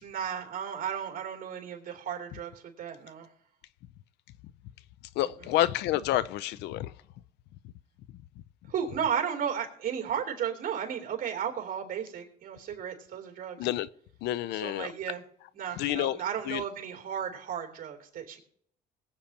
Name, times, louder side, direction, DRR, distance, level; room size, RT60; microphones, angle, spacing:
voice 1, 0.0-3.3 5.2-5.5 8.7-13.7 14.5-15.2 15.5-18.4, right 8 dB, 55° right, 3.0 m, -34 dB
voice 2, 5.2-6.9 13.6-13.9 14.2-14.9 15.8-16.2 16.5-16.6, left 14 dB, 85° left, 0.5 m, -29 dB
21.5 x 8.3 x 2.9 m
cardioid pair, 110°, 17 cm